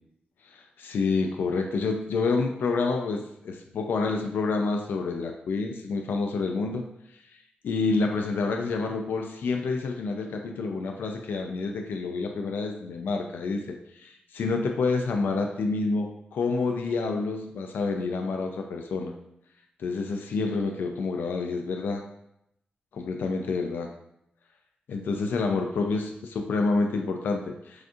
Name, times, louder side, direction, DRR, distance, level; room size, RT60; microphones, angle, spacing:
voice 1, 0.4-6.8 7.6-19.1 19.8-22.0 22.9-23.9 24.9-27.9, left 3 dB, 90° left, 3 dB, 0.4 m, -28 dB
6.2 x 2.6 x 2.4 m, 0.80 s
wide cardioid pair, 135°, 3 cm